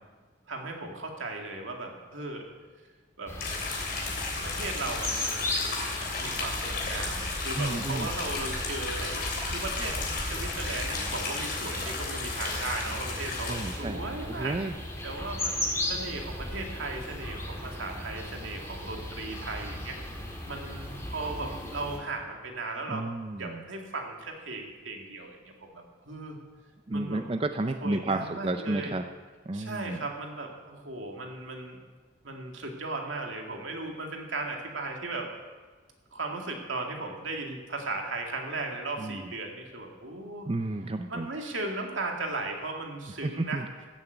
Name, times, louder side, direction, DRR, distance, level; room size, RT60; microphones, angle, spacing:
voice 1, 0.5-2.4 3.2-3.3 4.4-5.9 6.2-10.0 10.2-14.6 15.0-15.6 15.9-20.0 20.5-23.0 23.4-26.4 26.9-27.2 27.8-28.9 29.5-31.8 32.2-35.3 36.1-40.5 41.1-43.6, right 2 dB, 85° right, 2 dB, 2.2 m, -36 dB
sound 1, 3.3-22.0, left 1 dB, 15° left, 2.0 m, -36 dB
sound 2, 3.4-13.8, left 3 dB, 50° left, 3.2 m, -34 dB
voice 2, 7.6-8.1 13.5-14.0 14.3-14.7 22.9-23.6 26.9-29.0 29.5-30.0 39.0-39.2 40.5-41.3 43.2-43.7, right 2 dB, 30° right, 7 dB, 0.5 m, -31 dB
15.5 x 7.3 x 8.0 m, 1.4 s
head